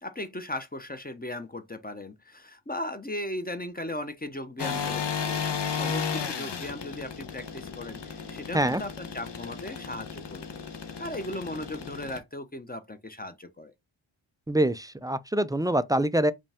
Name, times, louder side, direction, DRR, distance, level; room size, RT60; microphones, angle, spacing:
voice 1, 0.0-10.6 11.0-13.7, left 1 dB, 20° left, 0.7 m, -37 dB
sound 1, 4.6-12.2, left 6 dB, 55° left, 0.9 m, -34 dB
voice 2, 14.5-16.3, right 1 dB, 10° right, 0.3 m, -25 dB
5.1 x 2.3 x 3.4 m
cardioid pair, 45°, 50 cm